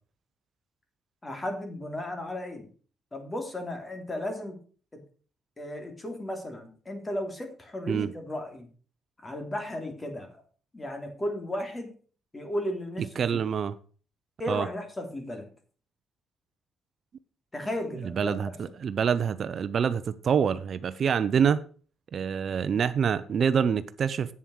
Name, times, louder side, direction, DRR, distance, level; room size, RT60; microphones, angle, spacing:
voice 1, 1.2-2.7 3.1-4.6 4.9-5.0 5.6-8.7 9.2-10.4 10.7-11.9 12.3-13.1 14.4-15.5 17.5-18.5, left 1 dB, 20° left, 3.1 m, -34 dB
voice 2, 13.2-13.7 14.5-14.7 18.0-18.5 18.8-21.6 22.1-24.3, right 7 dB, 55° right, 0.6 m, -26 dB
8.6 x 7.3 x 6.4 m
cardioid pair, 90°, 0 cm